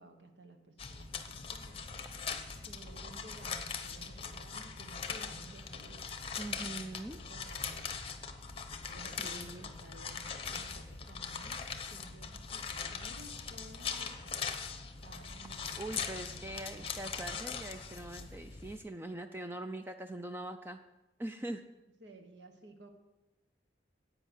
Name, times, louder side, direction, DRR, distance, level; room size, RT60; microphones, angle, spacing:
voice 1, 0.0-2.0 2.6-6.1 6.5-7.9 8.9-11.6 11.9-14.5 15.0-17.1 22.0-22.9, right 2 dB, 75° right, 5 dB, 1.5 m, -55 dB
sound 1, 0.8-18.8, left 6 dB, 30° left, 0.9 m, -41 dB
voice 2, 6.4-7.2 9.2-9.7 15.8-20.8 21.2-21.6, right 1 dB, 10° right, 6 dB, 0.4 m, -42 dB
10.5 x 8.6 x 6.5 m, 1.0 s
head